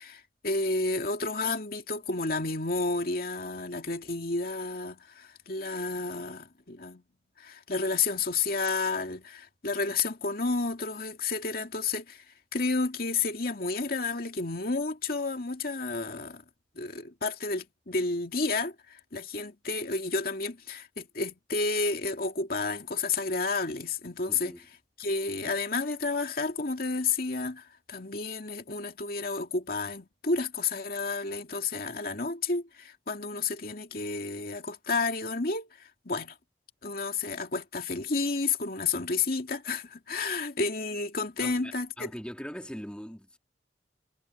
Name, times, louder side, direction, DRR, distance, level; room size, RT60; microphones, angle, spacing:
voice 1, 0.0-7.0 7.4-12.2 12.5-16.4 16.8-24.5 25.0-35.7 36.1-36.4 36.8-42.1, left 3 dB, 55° left, 2.4 m, -31 dB
voice 2, 24.3-24.6 41.4-43.4, equal, 5° left, 2.7 m, -41 dB
head